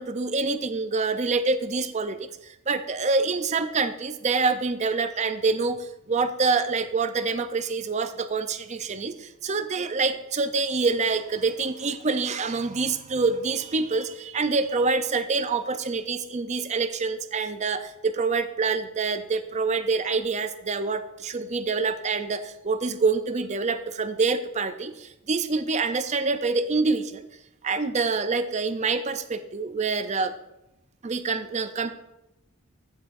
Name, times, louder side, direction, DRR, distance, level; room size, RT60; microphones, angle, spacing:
voice 1, 0.0-27.3 27.6-30.3 31.0-31.9, right 4 dB, 30° right, 10 dB, 0.5 m, -26 dB
15.0 x 7.2 x 2.5 m, 0.89 s
head